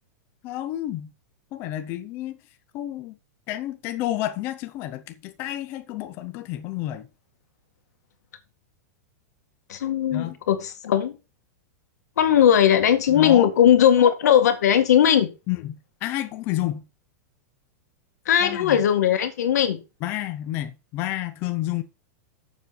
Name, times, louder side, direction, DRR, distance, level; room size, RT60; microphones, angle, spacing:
voice 1, 0.4-1.1 1.5-2.4 2.7-3.2 3.5-7.1 10.1-10.4 13.1-13.5 15.5-16.8 18.4-18.8 20.0-21.8, left 14 dB, 25° left, 0.6 m, -30 dB
voice 2, 9.7-11.2 12.2-15.3 18.3-19.8, left 9 dB, 90° left, 2.1 m, -18 dB
7.2 x 6.8 x 5.9 m
supercardioid pair, 180°, 9 cm